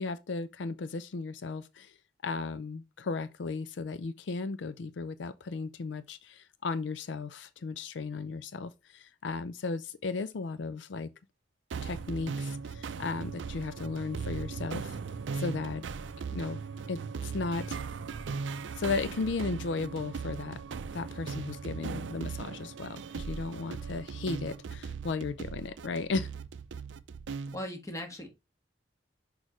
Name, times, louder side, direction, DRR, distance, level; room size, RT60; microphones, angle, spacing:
voice 1, 0.0-1.9 2.2-11.1 11.8-15.0 15.3-15.9 16.3-16.6 16.9-17.8 18.8-20.6 20.9-26.3, left 4 dB, 75° left, 0.4 m, -35 dB
sound 1, 11.7-27.6, right 5 dB, 85° right, 0.5 m, -38 dB
voice 2, 27.5-28.3, left 1 dB, 20° left, 1.4 m, -38 dB
6.3 x 5.1 x 3.0 m
head